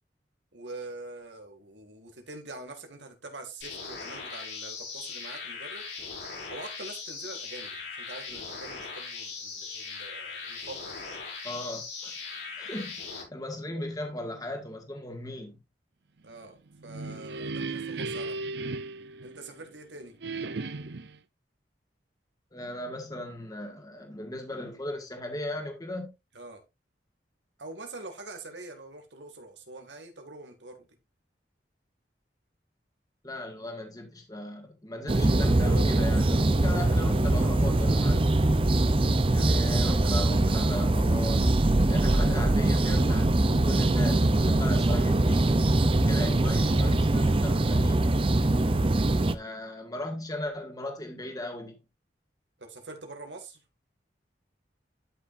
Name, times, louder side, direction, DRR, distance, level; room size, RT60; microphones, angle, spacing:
voice 1, 0.5-5.8 6.5-11.2 16.2-18.4 19.2-20.1 26.3-26.6 27.6-30.9 52.6-53.6, right 2 dB, 90° right, 2.3 m, -44 dB
sound 1, 3.6-13.2, left 5 dB, 80° left, 5.2 m, -39 dB
voice 2, 11.4-15.6 22.5-26.1 33.2-38.3 39.3-48.1 49.3-51.8, left 1 dB, 20° left, 2.0 m, -38 dB
sound 2, 16.7-19.8 20.2-21.2, right 3 dB, 70° right, 0.7 m, -36 dB
sound 3, 35.1-49.3, right 2 dB, 30° right, 0.6 m, -23 dB
12.5 x 6.0 x 2.6 m
head